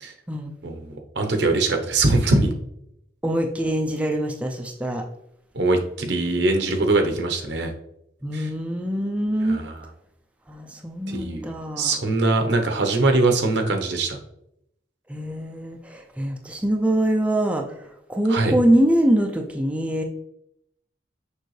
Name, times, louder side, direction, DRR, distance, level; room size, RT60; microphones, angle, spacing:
voice 1, 0.6-2.5 5.5-7.7 8.3-8.5 9.4-9.9 11.1-14.2 18.3-18.6, right 2 dB, 70° right, 5 dB, 0.9 m, -22 dB
voice 2, 3.2-5.0 8.2-9.6 10.5-12.0 15.1-17.7 18.1-20.0, right 1 dB, 5° right, 2 dB, 0.5 m, -23 dB
6.6 x 5.5 x 3.2 m, 0.78 s
head